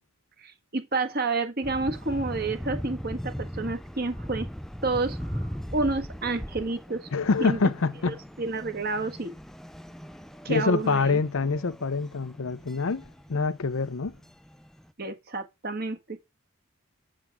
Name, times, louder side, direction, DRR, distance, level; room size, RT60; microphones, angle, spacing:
voice 1, 0.4-4.5 4.8-7.1 7.4-7.6 8.4-9.3 10.4-11.2 15.0-16.3, right 3 dB, 45° right, 1.4 m, -30 dB
sound 1, 1.6-14.9, equal, ahead, 0.4 m, -39 dB
voice 2, 7.1-8.2 10.5-13.0 13.3-14.2, left 4 dB, 70° left, 0.6 m, -25 dB
7.5 x 7.5 x 3.5 m
head